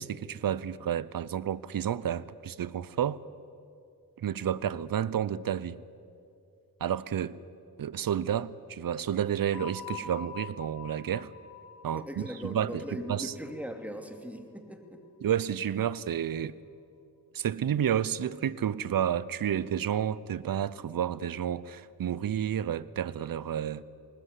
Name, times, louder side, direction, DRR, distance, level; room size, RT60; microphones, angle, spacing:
voice 1, 0.0-3.2 4.2-5.8 6.8-7.4 7.8-11.3 11.8-13.3 15.2-16.5 17.3-23.8, right 9 dB, 60° right, 0.8 m, -31 dB
sound 1, 9.5-14.2, left 7 dB, 75° left, 3.1 m, -45 dB
voice 2, 11.9-15.0, equal, 5° right, 2.7 m, -39 dB
19.5 x 19.5 x 8.3 m
cardioid pair, 60°, 38 cm